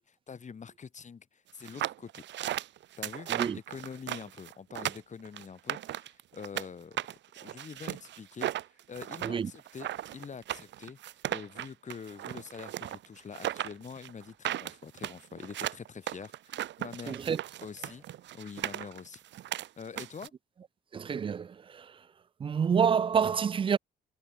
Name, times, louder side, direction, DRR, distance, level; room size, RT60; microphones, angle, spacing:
voice 1, 0.0-2.2 3.0-7.0 7.4-8.5 8.9-9.9 10.1-11.0 11.3-17.2 17.6-18.0 18.3-19.2 19.8-20.3, left 6 dB, 35° left, 1.8 m, -45 dB
sound 1, 1.6-6.7 7.0-20.3, right 13 dB, 65° right, 0.6 m, -36 dB
voice 2, 17.1-17.4 20.9-21.8 22.4-23.8, right 7 dB, 25° right, 0.3 m, -28 dB
cardioid pair, 90°, 20 cm